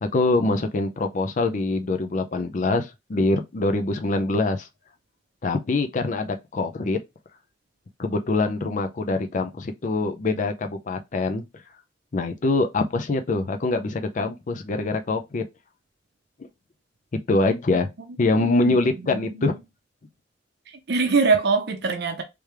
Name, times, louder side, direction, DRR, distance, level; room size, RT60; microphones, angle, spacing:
voice 1, 0.0-4.7 5.4-7.0 8.0-11.4 12.1-15.4 17.3-17.9 18.2-19.5, left 2 dB, 45° left, 0.5 m, -24 dB
voice 2, 18.3-19.5 20.7-22.2, right 4 dB, 60° right, 0.6 m, -24 dB
3.4 x 3.2 x 3.2 m
head